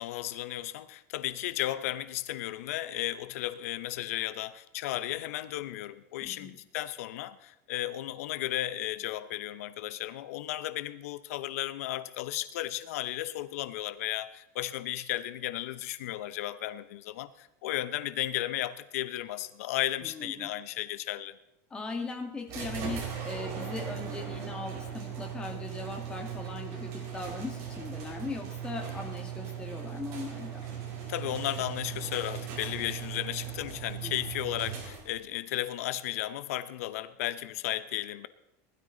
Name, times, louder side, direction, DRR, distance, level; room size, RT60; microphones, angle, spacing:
voice 1, 0.0-21.3 31.1-38.3, left 14 dB, 85° left, 14 dB, 0.7 m, -34 dB
voice 2, 6.2-6.5 20.0-20.5 21.7-30.6 34.0-34.1, left 3 dB, 10° left, 2 dB, 1.8 m, -39 dB
sound 1, 22.5-35.3, right 8 dB, 40° right, 4.3 m, -38 dB
19.5 x 12.5 x 3.9 m, 0.85 s
supercardioid pair, 180°, 8 cm